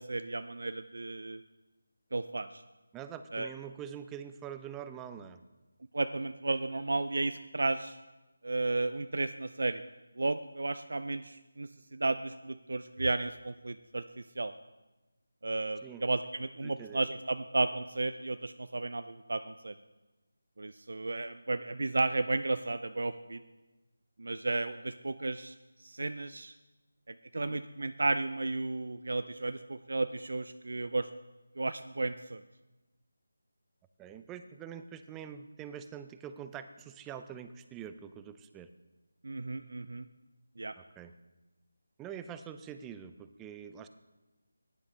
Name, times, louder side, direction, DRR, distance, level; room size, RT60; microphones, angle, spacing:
voice 1, 0.0-1.4 2.1-2.6 3.3-3.5 5.9-8.0 8.4-9.8 10.2-14.5 15.4-19.7 20.6-23.4 24.2-25.5 25.8-26.5 27.1-31.1 31.6-32.4 39.2-40.1 40.6-40.7, right 2 dB, 65° right, 11 dB, 0.4 m, -33 dB
voice 2, 2.9-5.4 15.8-16.0 16.6-17.0 27.3-27.6 34.0-38.7 40.8-41.1 42.0-43.9, right 8 dB, 10° right, 10 dB, 0.4 m, -45 dB
15.0 x 10.5 x 3.3 m, 1.1 s
figure-of-eight pair, 160°, 0 cm